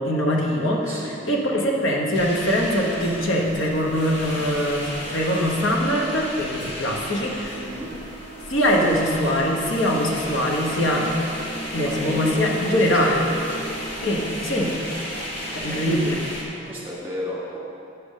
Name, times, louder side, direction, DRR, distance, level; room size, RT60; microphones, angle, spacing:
voice 1, 0.0-7.6 8.5-11.1 11.7-13.2 14.0-14.7 15.5-16.2, equal, 80° left, -1 dB, 1.1 m, -22 dB
voice 2, 0.8-1.2 7.5-7.9 11.8-13.7 15.7-15.9 16.7-17.6, equal, 10° right, -6 dB, 1.7 m, -33 dB
sound 1, 2.1-16.4, equal, 60° left, 1.4 m, -34 dB
8.2 x 4.4 x 6.5 m, 2.7 s
head